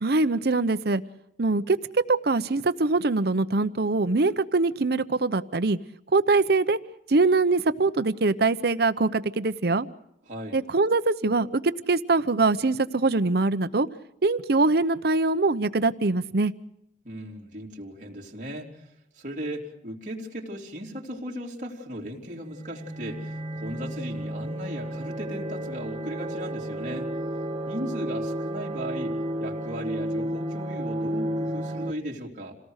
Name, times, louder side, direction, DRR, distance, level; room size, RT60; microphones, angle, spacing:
voice 1, 0.0-1.0 1.4-1.8 2.1-5.8 6.1-6.8 7.1-9.9 10.5-11.6 11.9-13.9 14.2-16.5, right 3 dB, 60° right, 13 dB, 0.8 m, -23 dB
voice 2, 10.3-10.6 17.0-18.8 19.2-27.1 27.7-29.1 29.4-32.5, equal, 45° right, -2 dB, 3.5 m, -37 dB
sound 1, 22.3-31.9, right 1 dB, 30° right, 1.6 m, -32 dB
28.0 x 18.0 x 6.5 m, 0.78 s
head